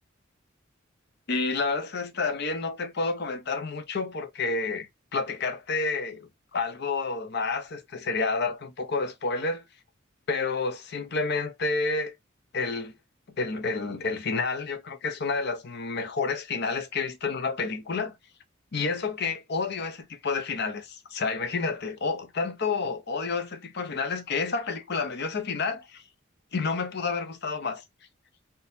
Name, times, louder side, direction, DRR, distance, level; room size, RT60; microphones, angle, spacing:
voice 1, 1.3-9.6 10.3-12.1 12.5-12.9 13.4-18.1 18.7-26.0 26.5-27.8, left 4 dB, 55° left, 0.7 m, -29 dB
3.8 x 2.7 x 2.6 m
head